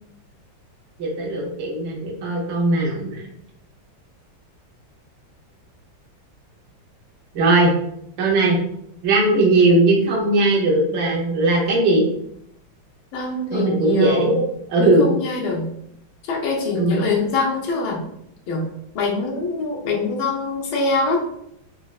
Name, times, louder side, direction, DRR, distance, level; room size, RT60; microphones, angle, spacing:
voice 1, 1.0-3.3 7.3-7.7 8.2-8.6 9.0-12.0 13.5-15.1 16.7-17.1, right 2 dB, 75° right, -2 dB, 0.6 m, -19 dB
voice 2, 13.1-14.4 14.8-15.7 16.3-18.0 18.5-18.7 18.9-21.2, left 3 dB, 85° left, -2 dB, 1.6 m, -24 dB
4.2 x 2.0 x 2.3 m, 0.74 s
omnidirectional pair, 2.2 m